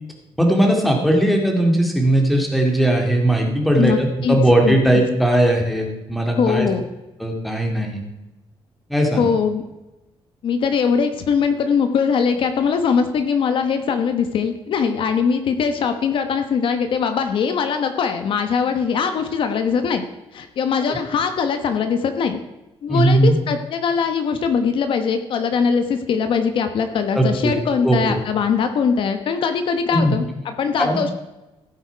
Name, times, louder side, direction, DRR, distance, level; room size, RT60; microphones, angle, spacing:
voice 1, 0.4-6.7 7.2-8.0 8.9-9.3 20.9-21.0 22.9-23.4 27.1-27.5 27.8-28.2 29.9-30.1 30.8-31.0, right 1 dB, ahead, 1 dB, 2.3 m, -18 dB
voice 2, 3.8-4.4 4.6-5.0 6.4-6.8 9.2-9.6 10.4-20.0 20.3-22.4 22.8-31.1, left 6 dB, 60° left, 7 dB, 1.1 m, -21 dB
16.0 x 9.0 x 4.6 m, 1.0 s
cardioid pair, 160°, 10 cm